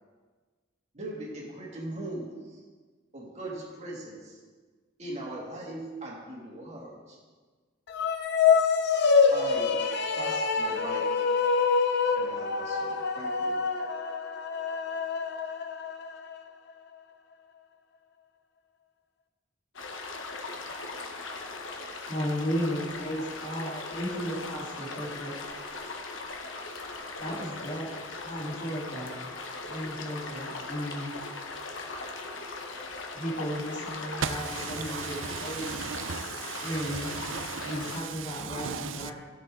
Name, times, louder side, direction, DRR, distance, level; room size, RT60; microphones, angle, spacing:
voice 1, 0.9-2.6 3.1-4.4 5.0-7.2 9.3-9.8 10.1-11.3 12.2-13.6, right 1 dB, 35° right, 2.3 m, -40 dB
sound 1, 7.9-16.4, left 5 dB, 60° left, 0.7 m, -26 dB
sound 2, 19.7-38.0, left 3 dB, 85° left, 1.1 m, -39 dB
voice 2, 22.1-25.4 27.2-27.9 28.2-29.1 29.7-31.1 33.1-35.8 36.6-37.2 37.6-39.1, equal, 40° left, 3.4 m, -34 dB
voice 3, 35.9-36.6 37.3-37.7 38.5-39.1, right 6 dB, 80° right, 0.6 m, -35 dB
16.0 x 6.9 x 3.8 m
head